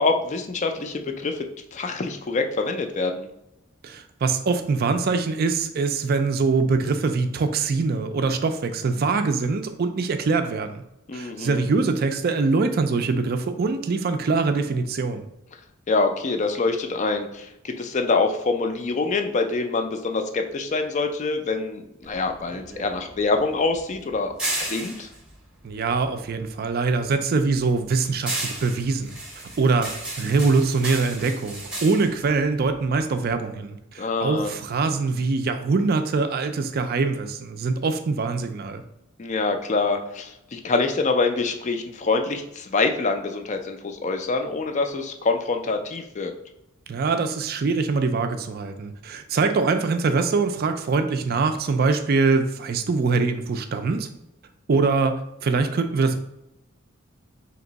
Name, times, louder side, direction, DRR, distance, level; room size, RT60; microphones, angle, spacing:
voice 1, 0.0-3.3 11.1-11.7 15.9-24.3 24.6-25.1 34.0-34.5 39.2-46.3, left 3 dB, 35° left, 6 dB, 0.4 m, -25 dB
voice 2, 3.8-10.8 11.1-15.3 25.6-29.2 29.6-38.8 46.9-54.1 54.7-56.2, right 4 dB, 45° right, 8 dB, 0.4 m, -23 dB
sound 1, 22.0-26.5 26.9-33.3, right 2 dB, 5° right, 0.7 m, -34 dB
3.5 x 2.9 x 4.0 m, 0.84 s
head